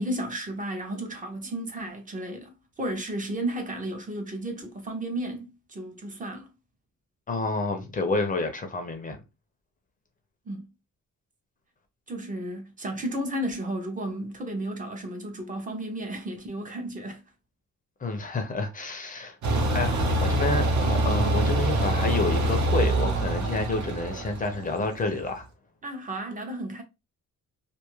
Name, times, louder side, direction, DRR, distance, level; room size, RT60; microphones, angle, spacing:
voice 1, 0.0-6.5 10.5-10.7 12.1-17.2 25.8-26.8, right 1 dB, 25° right, 0.5 m, -33 dB
voice 2, 7.3-9.2 18.0-19.4 19.7-25.5, left 3 dB, 25° left, 0.5 m, -29 dB
sound 1, 19.4-25.2, right 1 dB, 60° right, 0.7 m, -25 dB
2.5 x 2.3 x 2.9 m
wide cardioid pair, 170°, 32 cm